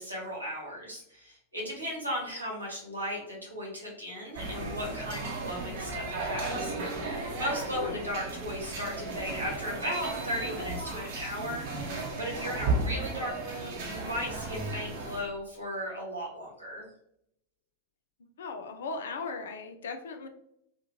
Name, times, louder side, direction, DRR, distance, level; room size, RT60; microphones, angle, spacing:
voice 1, 0.0-11.7 12.1-16.9, equal, 85° right, -3 dB, 1.4 m, -36 dB
sound 1, 4.3-15.2, right 3 dB, 50° right, 0.8 m, -35 dB
voice 2, 7.7-8.0 18.4-20.3, left 4 dB, 65° left, 6 dB, 0.4 m, -37 dB
3.5 x 2.3 x 2.9 m, 0.73 s
figure-of-eight pair, 90°, 0 cm